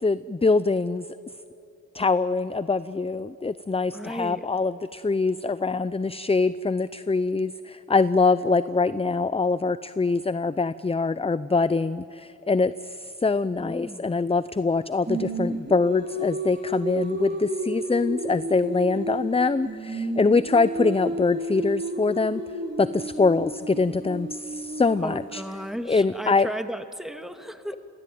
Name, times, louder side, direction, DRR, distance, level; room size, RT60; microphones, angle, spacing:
voice 1, 0.0-1.1 1.9-22.4 22.8-25.4 25.9-26.5, left 4 dB, 20° left, 15 dB, 0.5 m, -24 dB
voice 2, 3.9-4.4 13.6-14.1 25.0-27.8, equal, ahead, 7 dB, 1.9 m, -35 dB
Singing, 15.1-19.4 19.6-25.6, right 1 dB, 35° right, 5.3 m, -32 dB
28.5 x 22.5 x 9.3 m, 2.7 s
cardioid pair, 70°, 32 cm